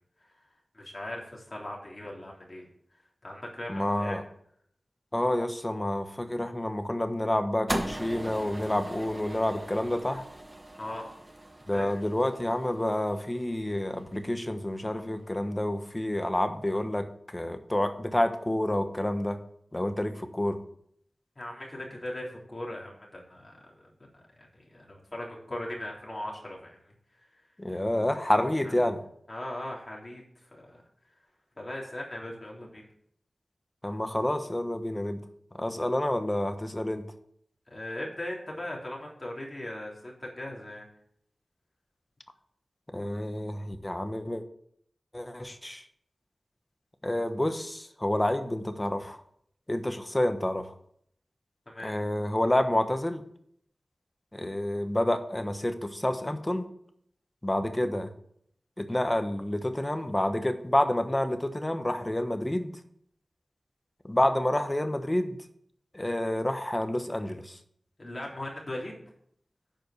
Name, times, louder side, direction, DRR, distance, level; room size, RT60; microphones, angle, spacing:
voice 1, 0.7-2.7 3.2-4.2 10.8-11.1 11.7-12.0 12.4-12.5 21.4-23.7 24.4-26.9 28.4-28.7 29.3-30.2 30.5-30.8 31.6-32.8 37.7-40.9 51.7-52.0 68.0-69.0, left 1 dB, 40° left, -2 dB, 3.5 m, -39 dB
voice 2, 3.7-4.2 5.1-10.2 11.7-17.1 17.3-19.4 19.7-20.6 27.6-29.0 33.8-35.2 35.6-37.0 42.9-44.4 45.1-45.8 47.0-49.2 49.7-50.7 51.8-53.2 54.3-56.6 57.4-58.1 58.8-62.7 64.0-65.4 65.9-67.5, left 1 dB, 20° left, 8 dB, 1.2 m, -28 dB
sound 1, 7.7-14.0, right 1 dB, 25° right, 1.4 m, -39 dB
8.9 x 5.3 x 6.7 m, 0.68 s
wide cardioid pair, 55°, 0 cm